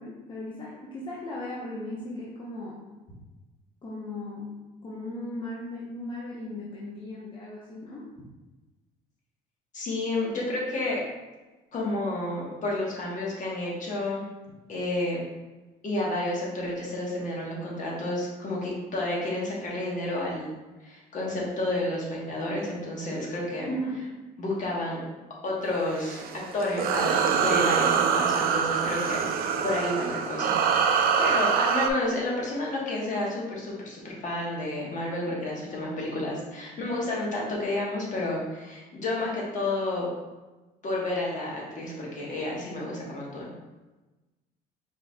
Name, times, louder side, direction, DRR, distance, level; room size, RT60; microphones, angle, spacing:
voice 1, 0.0-2.8 3.8-8.1 23.7-24.0, left 1 dB, 30° left, -6 dB, 0.8 m, -37 dB
voice 2, 9.7-11.0 11.7-14.3 14.7-15.2 15.8-20.5 20.8-23.7 24.4-25.0 25.4-30.5 30.9-40.1 40.8-43.5, left 2 dB, 50° left, -3 dB, 1.3 m, -30 dB
sound 1, 25.9-31.9, right 6 dB, 60° right, 0.4 m, -24 dB
4.6 x 4.0 x 2.3 m, 1.1 s
cardioid pair, 110°, 17 cm